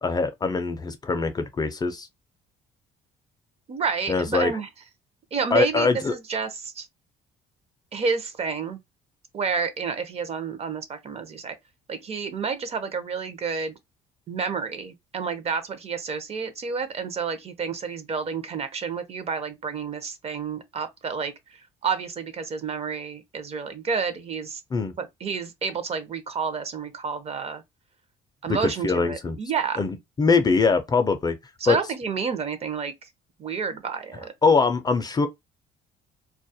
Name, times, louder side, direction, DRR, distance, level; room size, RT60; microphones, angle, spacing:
voice 1, 0.0-2.1 4.1-4.5 5.5-6.1 24.7-24.9 28.5-29.4 29.8-31.4 31.7-31.8 34.4-35.3, left 4 dB, 25° left, 0.4 m, -22 dB
voice 2, 3.7-4.7 5.3-6.9 7.9-8.8 9.3-11.5 11.9-13.7 14.3-21.3 21.8-24.6 25.0-27.6 28.4-29.8 31.6-32.9 33.4-34.3, right 5 dB, 40° right, 0.5 m, -29 dB
2.2 x 2.0 x 2.6 m
cardioid pair, 110°, 17 cm